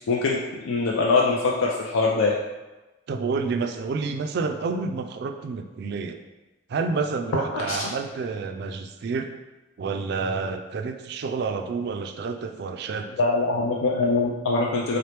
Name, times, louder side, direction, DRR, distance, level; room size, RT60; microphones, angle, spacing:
voice 1, 0.0-2.4 7.3-7.9 13.2-15.0, left 3 dB, 90° left, -2 dB, 0.4 m, -23 dB
voice 2, 3.1-6.2 6.7-9.3 9.8-13.1, right 4 dB, 55° right, 5 dB, 0.3 m, -29 dB
3.8 x 2.9 x 3.3 m, 1.1 s
head